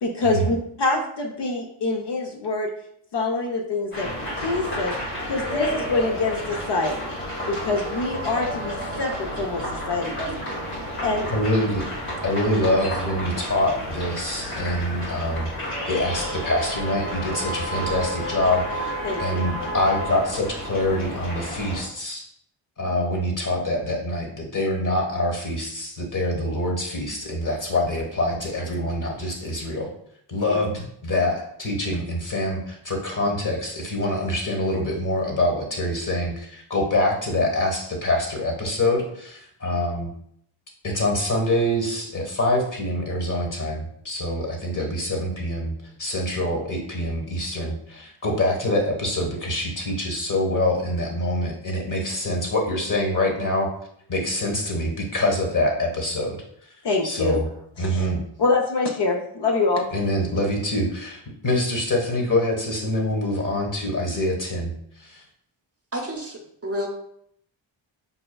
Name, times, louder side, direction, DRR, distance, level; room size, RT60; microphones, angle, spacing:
voice 1, 0.0-2.7 3.1-4.1 4.4-4.9 5.3-7.0 7.5-10.3 11.0-11.3 19.0-19.4 30.5-30.6 56.8-57.4 57.8-58.1 58.4-59.9, left 3 dB, 55° left, 1 dB, 0.7 m, -25 dB
sound 1, 3.9-21.8, equal, 85° left, 1.4 m, -31 dB
voice 2, 11.3-11.8 12.2-22.2 22.8-29.9 30.3-40.1 40.8-45.7 46.0-53.7 54.1-56.4 57.0-57.5 57.8-58.2 59.9-65.2, left 1 dB, 40° left, 1 dB, 1.2 m, -25 dB
voice 3, 65.9-66.9, equal, 30° right, 1 dB, 0.7 m, -30 dB
5.5 x 2.3 x 2.2 m, 0.70 s
cardioid pair, 50°, 49 cm